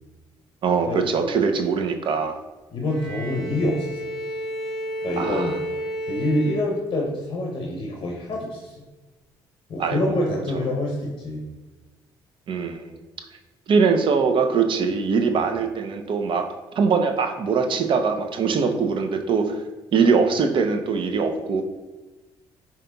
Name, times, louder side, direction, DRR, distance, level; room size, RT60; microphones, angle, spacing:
voice 1, 0.6-2.4 5.2-5.5 9.8-10.4 12.5-12.9 13.7-16.5 16.8-19.6 19.9-21.6, right 5 dB, 50° right, 6 dB, 0.4 m, -22 dB
voice 2, 2.7-4.0 5.0-5.5 6.1-8.7 9.7-11.4 15.4-15.5, left 1 dB, 45° left, -1 dB, 0.6 m, -26 dB
Bowed string instrument, 2.9-7.3, equal, ahead, 1.0 m, -32 dB
4.9 x 2.8 x 2.2 m, 1.2 s
supercardioid pair, 65°, 11 cm